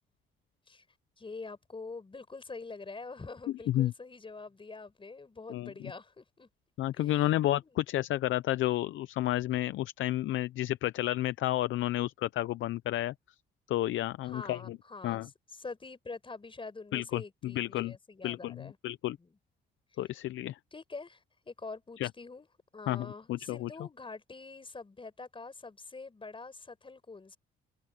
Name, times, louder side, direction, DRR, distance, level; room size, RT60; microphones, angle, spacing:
voice 1, 1.2-6.5 7.0-7.7 14.2-15.3 15.6-18.8 19.2-19.4 20.7-22.5 22.7-27.4, left 3 dB, 25° left, 5.0 m, -45 dB
voice 2, 6.8-13.1 13.7-14.8 15.0-15.3 16.9-18.0 18.2-19.2 20.0-20.6 22.0-22.1 22.9-23.7, left 14 dB, 75° left, 0.6 m, -31 dB
cardioid pair, 90°, 20 cm